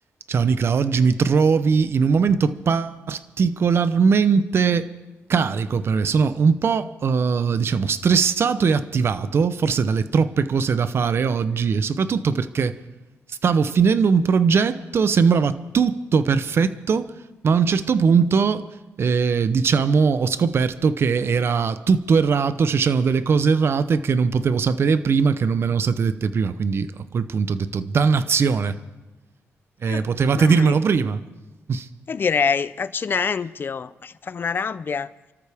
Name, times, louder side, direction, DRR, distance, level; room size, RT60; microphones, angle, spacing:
voice 1, 0.3-4.9 5.3-12.8 13.3-17.1 17.4-18.7 19.0-28.8 29.8-31.2 31.7-31.9, right 5 dB, 55° right, 0.8 m, -20 dB
voice 2, 30.4-30.8 32.1-35.1, left 6 dB, 45° left, 0.6 m, -25 dB
29.0 x 13.0 x 3.5 m
cardioid pair, 105°, 5 cm